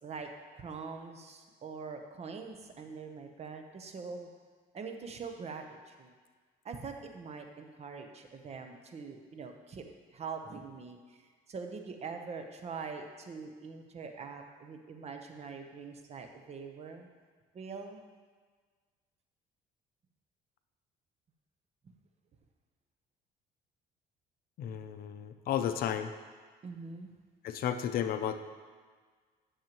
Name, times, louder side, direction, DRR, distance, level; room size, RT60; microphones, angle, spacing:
voice 1, 0.5-4.3 4.7-6.1 6.6-11.2 11.5-17.1 17.5-18.0 26.6-27.1, right 5 dB, 40° right, 5 dB, 0.8 m, -43 dB
voice 2, 24.6-26.1 27.4-28.4, left 9 dB, 60° left, 9 dB, 0.5 m, -33 dB
10.5 x 6.5 x 3.0 m, 1.5 s
cardioid pair, 110°, 17 cm